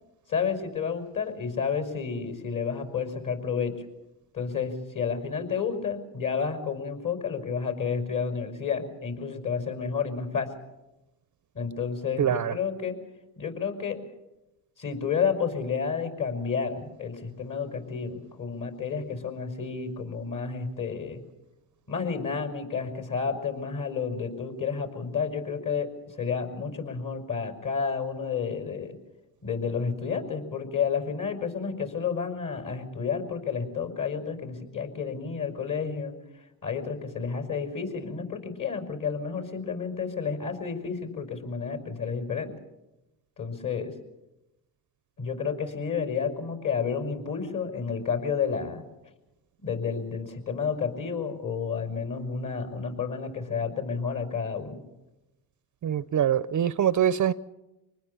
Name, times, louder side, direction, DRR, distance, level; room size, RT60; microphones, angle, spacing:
voice 1, 0.3-3.8 4.3-10.6 11.5-12.9 13.4-14.0 14.8-21.2 21.9-29.0 29.4-36.2 36.6-42.5 43.4-43.9 45.2-48.8 49.6-54.8, left 6 dB, 40° left, 5.8 m, -30 dB
voice 2, 12.2-12.5 55.8-57.3, right 9 dB, 40° right, 0.7 m, -24 dB
26.0 x 20.0 x 7.1 m
supercardioid pair, 80°, 47 cm